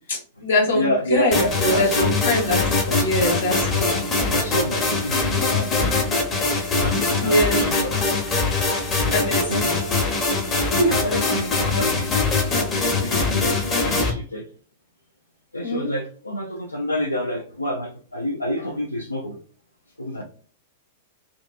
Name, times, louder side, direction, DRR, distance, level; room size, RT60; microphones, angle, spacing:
voice 1, 0.1-2.6 3.0-4.0 7.2-7.6 9.1-9.8 10.8-11.1 15.6-15.9, left 1 dB, 65° left, -1 dB, 1.1 m, -23 dB
voice 2, 0.7-2.2 2.9-3.1 4.2-6.2 6.7-8.2 9.5-9.7 10.9-14.4 15.5-19.4 20.0-20.2, left 1 dB, 85° left, 0 dB, 0.3 m, -28 dB
sound 1, 1.3-14.1, left 3 dB, 25° left, 0.8 m, -22 dB
2.5 x 2.3 x 2.3 m, 0.42 s
figure-of-eight pair, 95°, 0 cm